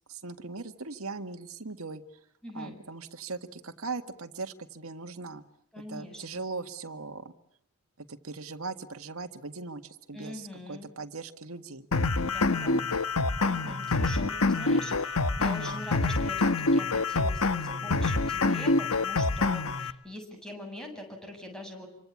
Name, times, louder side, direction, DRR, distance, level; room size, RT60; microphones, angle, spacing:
voice 1, 0.1-2.0 2.5-5.4 5.9-7.3 8.0-11.9, right 3 dB, 75° right, 8 dB, 1.9 m, -39 dB
voice 2, 2.4-2.8 5.7-6.4 10.1-10.9 12.3-12.8 13.4-21.9, left 1 dB, 5° left, 3 dB, 7.4 m, -43 dB
sound 1, 11.9-19.9, left 3 dB, 85° left, 1.3 m, -26 dB
28.0 x 25.0 x 8.5 m, 0.69 s
head